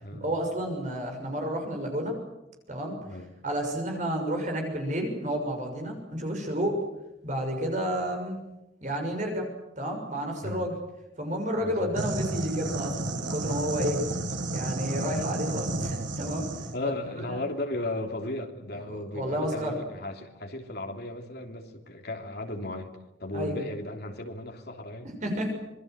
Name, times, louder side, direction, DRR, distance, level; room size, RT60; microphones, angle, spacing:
voice 1, 0.2-2.2 2.7-3.0 3.4-6.8 7.2-8.4 8.8-9.5 9.8-10.8 11.2-14.0 14.5-16.5 16.8-17.4 18.9-19.8 23.3-23.6 25.2-25.5, equal, 40° right, 3 dB, 6.4 m, -31 dB
voice 2, 11.6-11.9 14.3-14.4 14.9-15.0 16.7-22.9 23.2-25.1, left 1 dB, 55° left, 4 dB, 3.2 m, -35 dB
sound 1, 12.0-16.8, right 2 dB, 75° right, 2.2 m, -31 dB
26.0 x 21.5 x 8.1 m, 0.95 s
head